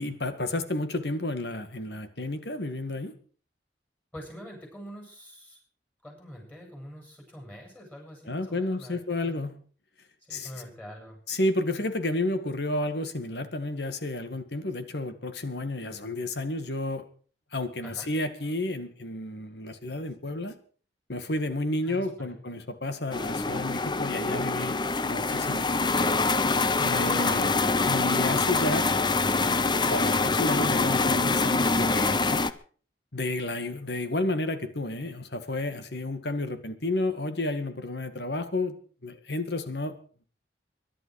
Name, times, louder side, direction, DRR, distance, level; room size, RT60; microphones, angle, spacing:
voice 1, 0.0-3.1 8.3-9.6 10.3-10.5 11.3-17.0 17.5-20.6 21.1-24.8 25.1-25.8 26.8-27.5 27.8-28.9 29.9-32.4 33.1-38.7 39.0-39.9, left 2 dB, 65° left, 9 dB, 2.0 m, -31 dB
voice 2, 4.1-5.6 6.0-9.4 10.3-11.2 17.8-18.1 21.8-22.4, equal, 10° left, 1 dB, 7.6 m, -45 dB
sound 1, 23.1-32.5, left 3 dB, 25° left, 0.7 m, -25 dB
22.5 x 11.5 x 4.8 m, 0.43 s
head